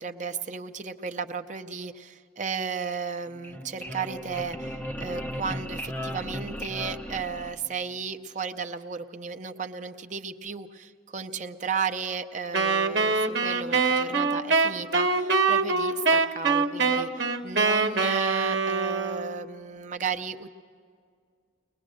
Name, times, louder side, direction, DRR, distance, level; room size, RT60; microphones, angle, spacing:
voice 1, 0.0-20.5, right 5 dB, 40° right, 7 dB, 0.6 m, -34 dB
sound 1, 3.3-8.0, equal, 10° left, 0.6 m, -36 dB
Wind instrument woodwind instrument, 12.5-19.4, right 4 dB, 55° right, 1.0 m, -24 dB
22.5 x 20.5 x 6.4 m, 2.1 s
head